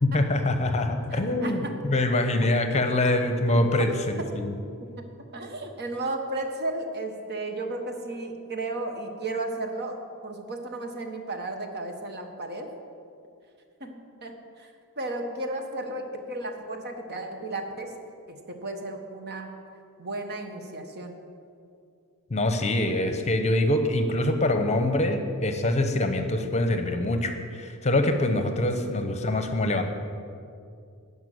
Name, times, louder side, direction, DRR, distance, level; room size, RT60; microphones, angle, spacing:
voice 1, 0.0-3.9 4.3-4.5 22.3-29.8, left 1 dB, 30° left, 6 dB, 0.8 m, -24 dB
voice 2, 0.8-1.8 2.4-3.1 3.5-3.9 5.3-12.7 13.8-14.0 14.2-14.7 15.0-17.9 18.3-19.6 20.0-21.2 26.4-26.5 28.8-29.1, right 2 dB, 50° right, 4 dB, 1.3 m, -34 dB
12.5 x 5.5 x 9.2 m, 2.4 s
head